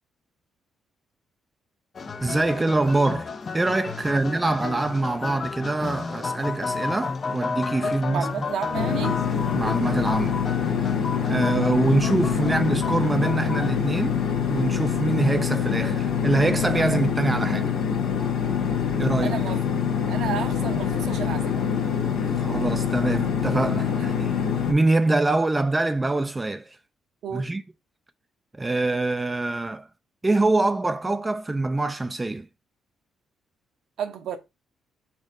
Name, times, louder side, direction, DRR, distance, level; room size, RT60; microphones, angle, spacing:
sound 1, 1.9-13.8, left 4 dB, 40° left, 0.5 m, -32 dB
voice 1, 2.2-8.3 9.5-10.8 11.3-17.7 19.0-19.4 22.3-24.3 24.7-26.8 27.3-27.6 28.5-29.9 30.2-32.5, right 2 dB, 20° right, 0.4 m, -24 dB
voice 2, 4.1-4.5 7.8-9.2 12.5-12.7 16.8-17.0 19.2-19.6 20.1-21.6 27.2-27.5 34.0-34.4, right 8 dB, 75° right, 0.9 m, -33 dB
sound 2, 8.7-24.7, left 7 dB, 80° left, 1.2 m, -25 dB
4.4 x 2.4 x 4.7 m
cardioid pair, 90°, 0 cm